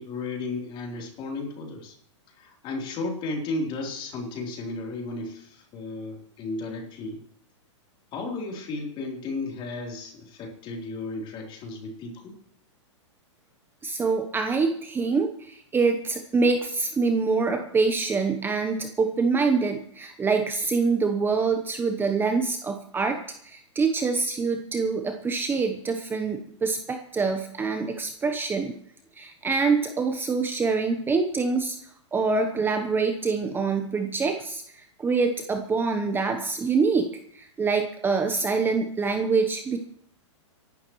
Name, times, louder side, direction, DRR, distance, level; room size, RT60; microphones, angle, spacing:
voice 1, 0.0-2.0 2.4-7.2 8.1-12.3, left 3 dB, 30° left, 0 dB, 3.6 m, -34 dB
voice 2, 13.8-28.7 29.2-31.8 32.1-39.8, right 4 dB, 15° right, 6 dB, 0.9 m, -25 dB
25.0 x 11.5 x 3.1 m, 0.68 s
hypercardioid pair, 125°, 16 cm